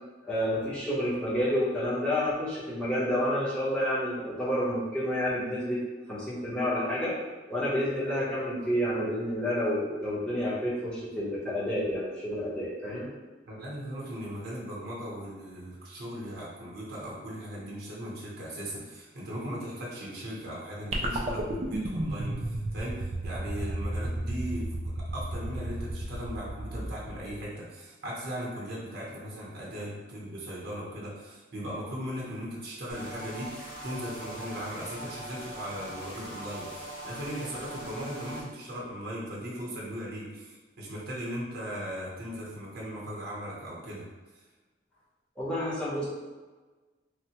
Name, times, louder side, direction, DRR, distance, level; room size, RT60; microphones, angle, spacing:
voice 1, 0.3-5.8 6.1-7.1 7.5-13.1 45.4-46.0, equal, 5° left, -9 dB, 0.8 m, -29 dB
voice 2, 13.5-44.1, equal, 60° right, -4 dB, 0.8 m, -38 dB
sound 1, 20.9-27.4, right 1 dB, 35° right, 0.3 m, -33 dB
sound 2, 32.9-38.4, right 1 dB, 50° left, 1.0 m, -41 dB
3.2 x 2.1 x 2.8 m, 1.3 s
head